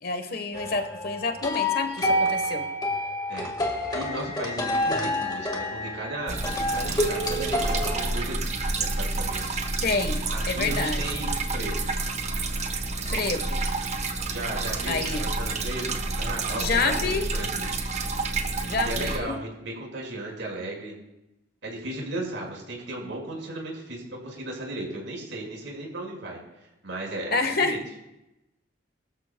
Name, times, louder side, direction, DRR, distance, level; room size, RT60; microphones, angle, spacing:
voice 1, 0.0-2.7 9.8-11.2 13.1-13.6 14.9-15.3 16.5-17.3 18.6-19.4 27.3-27.8, left 3 dB, 55° left, 7 dB, 1.2 m, -28 dB
sound 1, 0.5-8.1, left 1 dB, 20° left, 1.6 m, -28 dB
voice 2, 3.9-6.4 6.7-9.5 10.3-11.9 14.3-17.7 18.8-20.9 21.6-26.4 26.8-27.8, right 1 dB, 80° right, -1 dB, 5.3 m, -35 dB
sound 2, 6.3-19.2, right 3 dB, 35° right, 1.0 m, -29 dB
23.5 x 13.0 x 2.3 m, 0.92 s
head